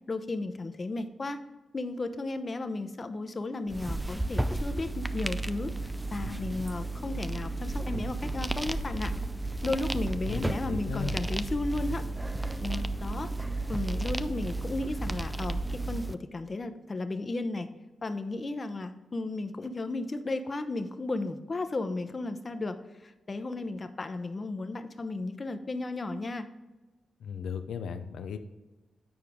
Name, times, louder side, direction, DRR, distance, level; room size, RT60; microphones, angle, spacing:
voice 1, 0.1-1.4 1.7-9.1 9.6-12.0 12.6-13.3 13.7-17.7 18.0-26.5, left 2 dB, 40° left, 9 dB, 0.7 m, -34 dB
sound 1, 3.7-16.1, right 2 dB, 10° right, 0.4 m, -33 dB
voice 2, 10.3-11.2 27.2-28.4, left 6 dB, 80° left, 9 dB, 0.5 m, -36 dB
8.8 x 4.7 x 3.6 m, 1.1 s
cardioid pair, 60°, 0 cm